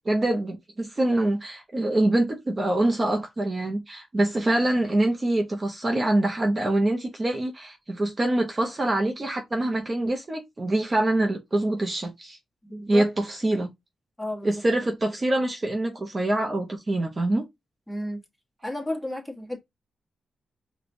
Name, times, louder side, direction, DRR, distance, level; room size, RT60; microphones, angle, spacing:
voice 1, 0.1-12.4 12.9-13.7 14.4-17.4, right 1 dB, 30° right, 0.6 m, -25 dB
voice 2, 12.6-13.1 14.2-14.5 17.9-18.2 18.6-19.6, left 1 dB, 5° left, 1.2 m, -32 dB
4.8 x 2.2 x 2.5 m
cardioid pair, 90°, 0 cm